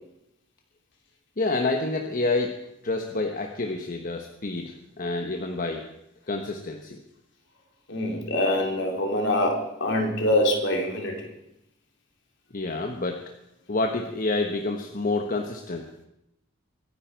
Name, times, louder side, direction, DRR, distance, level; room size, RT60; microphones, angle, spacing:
voice 1, 1.4-2.6 2.8-5.9 6.3-7.0 12.5-13.2 13.7-16.0, left 2 dB, 45° left, 4 dB, 1.1 m, -28 dB
voice 2, 7.9-11.3, left 1 dB, 60° left, 1 dB, 3.1 m, -24 dB
23.5 x 9.8 x 4.5 m, 0.82 s
head